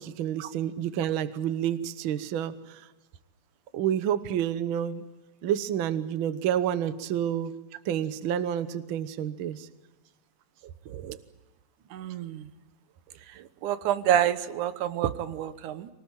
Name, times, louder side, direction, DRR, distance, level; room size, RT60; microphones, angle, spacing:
voice 1, 0.0-2.8 3.7-5.0 5.4-7.5 7.8-9.7, right 10 dB, 60° right, 14 dB, 1.4 m, -29 dB
voice 2, 11.9-12.5 13.6-15.9, right 10 dB, 90° right, 13 dB, 2.6 m, -28 dB
25.0 x 19.0 x 8.9 m, 1.2 s
omnidirectional pair, 3.5 m